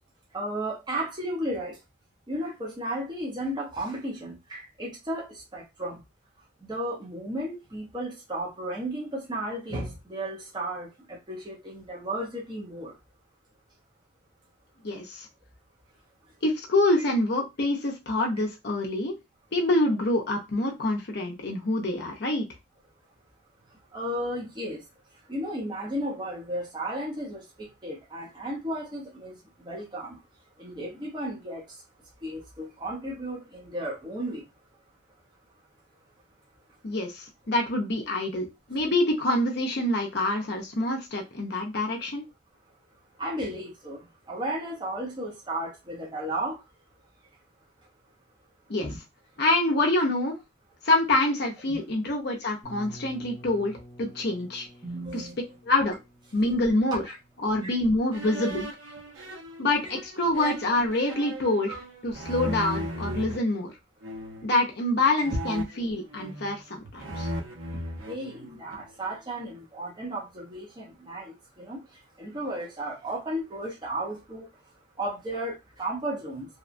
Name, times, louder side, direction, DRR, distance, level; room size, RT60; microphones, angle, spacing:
voice 1, 0.3-1.8 2.3-6.0 6.6-12.9 23.9-24.8 25.3-30.2 30.6-31.7 32.2-34.4 43.2-46.6 48.8-49.0 51.7-51.8 54.8-55.3 57.0-57.2 57.6-57.7 60.4-60.5 61.7-61.8 67.7-71.8 72.2-74.5 75.0-76.6, right 1 dB, 20° right, 0.7 m, -34 dB
voice 2, 14.8-15.3 16.4-19.2 19.5-22.5 36.8-42.2 48.7-48.9 49.4-50.4 50.8-54.7 55.1-55.3 55.6-56.0 56.3-57.0 57.4-58.7 59.6-61.7 62.0-63.7 64.4-67.3, left 2 dB, 55° left, 0.6 m, -26 dB
sound 1, 52.6-58.4, right 1 dB, 15° left, 0.7 m, -50 dB
sound 2, 58.1-63.4 64.0-64.5 65.2-66.6 66.9-68.9, right 1 dB, 85° right, 0.7 m, -37 dB
2.8 x 2.2 x 2.5 m
head